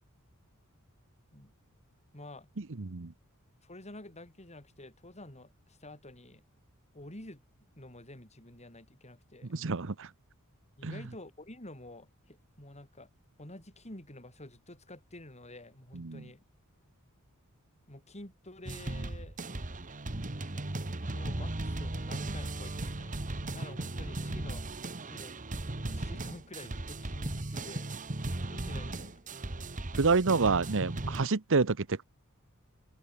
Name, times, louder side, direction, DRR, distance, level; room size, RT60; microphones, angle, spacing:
voice 1, 2.1-2.5 3.6-6.4 6.9-7.4 7.8-9.6 10.8-13.1 13.4-16.4 17.9-19.4 21.1-24.7 25.0-28.0 28.4-29.2, left 1 dB, 30° left, 7.8 m, -49 dB
voice 2, 2.8-3.1 9.5-10.1 10.8-11.0 15.9-16.2 30.0-32.0, right 4 dB, 60° right, 1.0 m, -28 dB
sound 1, 18.7-31.3, right 2 dB, 35° right, 1.4 m, -37 dB
open air
head